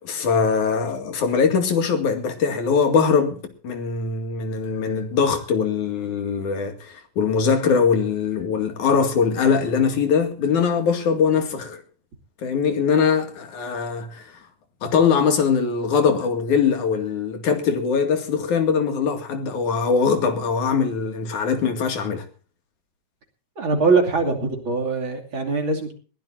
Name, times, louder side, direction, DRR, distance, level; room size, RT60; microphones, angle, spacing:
voice 1, 0.0-3.4 3.6-11.8 12.4-14.4 14.8-22.2, left 6 dB, 85° left, 3.7 m, -21 dB
voice 2, 23.6-25.9, right 4 dB, 40° right, 3.3 m, -22 dB
21.0 x 16.0 x 2.7 m
omnidirectional pair, 3.4 m